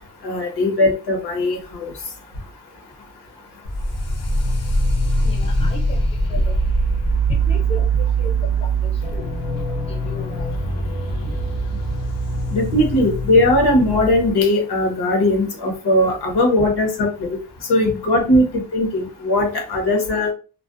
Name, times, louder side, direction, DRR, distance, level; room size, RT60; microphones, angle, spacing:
voice 1, 0.2-1.9 12.5-17.3 17.7-20.3, left 1 dB, 80° left, 1.0 m, -19 dB
sound 1, 3.6-14.3, right 2 dB, 60° left, 0.7 m, -22 dB
voice 2, 5.2-6.0 6.3-6.6 7.5-7.9 8.2-8.3 8.6-8.9 9.2-9.3 9.9-10.5, left 1 dB, 15° left, 0.6 m, -33 dB
2.4 x 2.1 x 2.4 m
cardioid pair, 110°, 39 cm